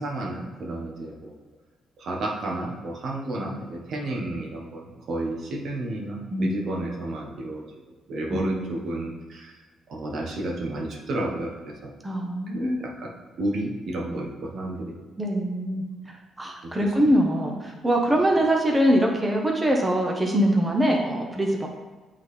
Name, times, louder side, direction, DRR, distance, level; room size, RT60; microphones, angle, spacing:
voice 1, 0.0-1.3 2.0-7.6 8.1-9.6 9.9-11.9 12.5-13.1 13.4-15.0 16.6-16.7, right 1 dB, 65° right, -1 dB, 1.0 m, -31 dB
voice 2, 12.0-12.8 15.2-21.7, equal, 20° right, 0 dB, 0.9 m, -23 dB
8.1 x 3.8 x 3.2 m, 1.3 s
cardioid pair, 90°, 0 cm